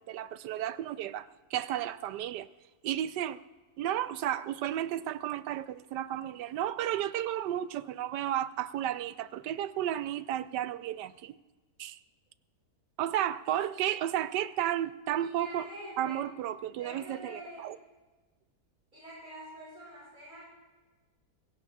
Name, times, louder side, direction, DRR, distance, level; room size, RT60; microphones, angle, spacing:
voice 1, 0.0-2.5 2.8-3.4 3.8-11.3 11.8-12.0 13.0-15.6 16.0-17.8, right 11 dB, 85° right, 1.2 m, -33 dB
voice 2, 15.2-16.2 16.7-17.7 18.9-20.4, right 1 dB, 25° right, 6.1 m, -46 dB
23.5 x 16.5 x 2.4 m
omnidirectional pair, 1.8 m